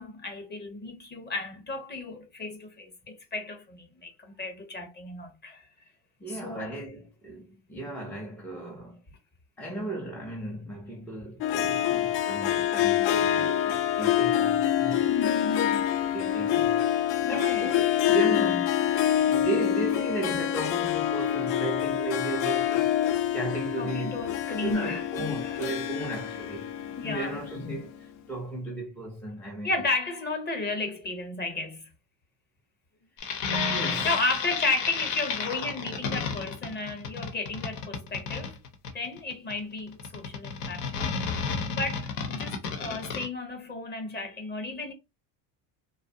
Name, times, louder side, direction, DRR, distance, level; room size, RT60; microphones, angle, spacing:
voice 1, 0.0-5.6 6.3-6.7 15.1-15.9 17.2-17.7 23.8-25.1 25.4-25.5 27.0-27.4 29.6-31.9 33.8-38.6 38.9-41.0 41.4-44.9, left 3 dB, 20° left, 0.7 m, -33 dB
voice 2, 6.2-9.0 9.6-15.1 16.0-16.9 17.2-19.0 19.3-22.9 23.3-24.2 24.5-26.7 27.0-29.7 33.7-34.3, right 2 dB, 5° left, 0.4 m, -35 dB
Harp, 11.4-27.9, left 11 dB, 65° left, 0.5 m, -26 dB
sound 1, 33.2-43.3, left 5 dB, 85° left, 0.9 m, -31 dB
2.6 x 2.0 x 2.6 m
cardioid pair, 125°, 48 cm